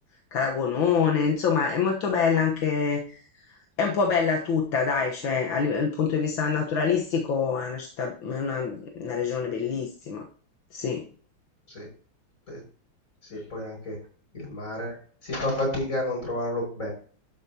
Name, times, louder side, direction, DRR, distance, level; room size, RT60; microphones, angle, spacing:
voice 1, 0.3-3.2 3.8-10.3 10.7-11.1 13.3-13.4, left 6 dB, 75° left, 1 dB, 2.0 m, -26 dB
voice 2, 13.3-14.0 14.3-15.0 15.2-16.9, left 1 dB, 40° left, -1 dB, 6.2 m, -30 dB
12.5 x 8.6 x 2.9 m, 0.43 s
omnidirectional pair, 2.2 m